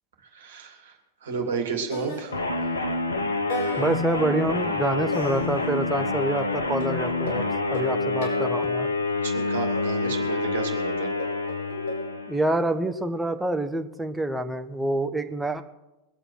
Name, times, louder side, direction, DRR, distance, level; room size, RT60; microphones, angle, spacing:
voice 1, 0.2-2.4 9.2-11.1, right 5 dB, 60° right, 3 dB, 2.5 m, -32 dB
sound 1, 1.3-1.6 1.9-2.9 3.5-6.3 6.8-9.0 9.7-12.0, left 2 dB, 50° left, 4.8 m, -37 dB
sound 2, 2.3-12.6, left 2 dB, 75° left, 1.1 m, -27 dB
voice 2, 3.8-7.4 7.7-8.9 12.3-15.6, right 1 dB, 5° right, 7 dB, 1.0 m, -27 dB
22.0 x 8.0 x 6.3 m, 1.0 s
figure-of-eight pair, 90°, 0 cm